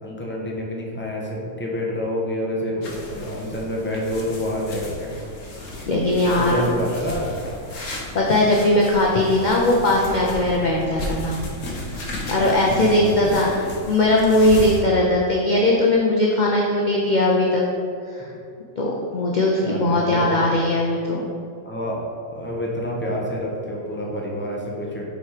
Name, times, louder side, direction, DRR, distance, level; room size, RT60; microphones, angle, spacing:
voice 1, 0.0-5.1 6.2-7.5 12.4-13.3 19.6-20.5 21.6-22.0 22.3-25.1, equal, 10° left, -3 dB, 0.9 m, -28 dB
sound 1, 2.8-14.8, left 1 dB, 65° left, 1.6 m, -34 dB
voice 2, 5.9-6.5 7.7-11.4 12.3-17.6 18.1-18.2 18.8-21.3, left 1 dB, 45° left, -2 dB, 0.7 m, -19 dB
6.5 x 4.7 x 4.9 m, 2.4 s
omnidirectional pair, 1.5 m